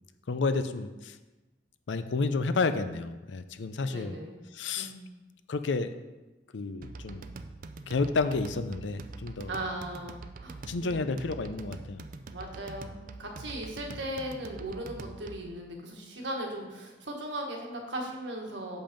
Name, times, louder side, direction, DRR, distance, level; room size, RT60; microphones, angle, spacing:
voice 1, 0.3-1.2 1.9-4.2 4.5-4.9 5.5-5.9 6.5-7.3 7.9-9.5 10.7-12.1, left 3 dB, 80° left, 11 dB, 0.5 m, -30 dB
voice 2, 3.9-4.4 4.7-5.1 9.5-11.2 12.3-18.8, right 1 dB, 85° right, 1 dB, 1.5 m, -38 dB
sound 1, 6.8-15.5, right 3 dB, 50° right, 0.5 m, -44 dB
7.0 x 5.6 x 5.1 m, 1.1 s
head